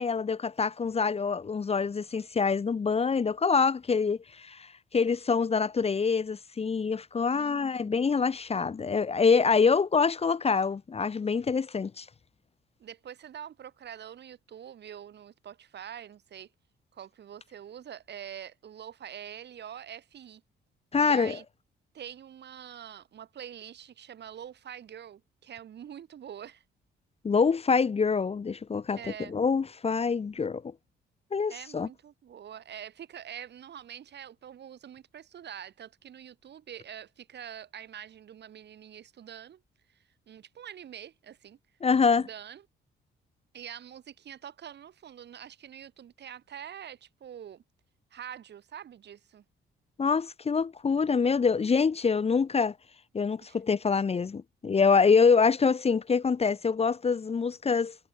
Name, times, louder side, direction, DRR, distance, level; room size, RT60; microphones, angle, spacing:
voice 1, 0.0-12.1 20.9-21.4 27.2-29.0 29.3-30.6 31.3-31.9 41.8-42.3 50.0-52.7 53.1-57.9, left 5 dB, 30° left, 0.9 m, -25 dB
voice 2, 7.3-8.0 12.8-16.5 16.9-20.4 21.0-21.4 21.9-26.6 29.0-29.4 31.5-39.6 39.9-40.0 40.3-41.6 42.2-42.6 43.5-47.6 48.1-49.4 53.4-53.6, right 9 dB, 60° right, 2.5 m, -45 dB
cardioid pair, 90°, 20 cm